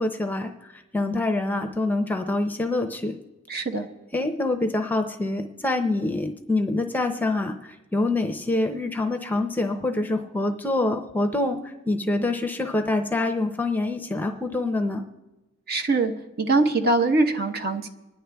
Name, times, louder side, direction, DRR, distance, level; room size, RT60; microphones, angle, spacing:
voice 1, 0.0-3.1 4.1-11.6 11.9-15.0, left 2 dB, 10° left, 6 dB, 0.6 m, -26 dB
voice 2, 3.5-3.9 15.7-16.1 16.4-17.9, right 3 dB, 50° right, 5 dB, 1.1 m, -22 dB
26.0 x 10.0 x 3.4 m, 1.1 s
head